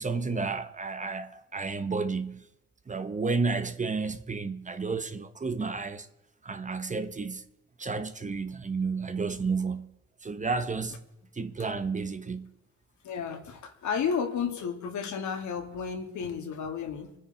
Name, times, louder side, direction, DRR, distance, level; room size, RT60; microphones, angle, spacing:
voice 1, 0.0-2.4 2.9-6.1 6.4-7.4 7.8-9.9 10.2-11.0 11.3-12.5, right 4 dB, 25° right, 1.1 m, -31 dB
voice 2, 13.0-17.1, left 6 dB, 70° left, 2.6 m, -32 dB
25.5 x 10.0 x 4.3 m
cardioid pair, 90°, 30 cm